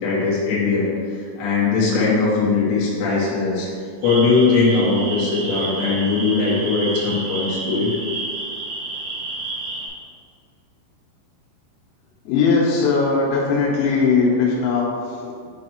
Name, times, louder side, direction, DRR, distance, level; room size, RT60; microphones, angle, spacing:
voice 1, 0.0-0.9 1.2-3.7 4.0-7.9, left 4 dB, 65° left, -7 dB, 3.2 m, -20 dB
sound 1, 4.0-9.9, right 2 dB, 90° right, 3.9 m, -30 dB
voice 2, 12.3-15.5, left 4 dB, 85° left, -3 dB, 3.7 m, -19 dB
8.8 x 3.2 x 4.3 m, 2.2 s
omnidirectional pair, 5.9 m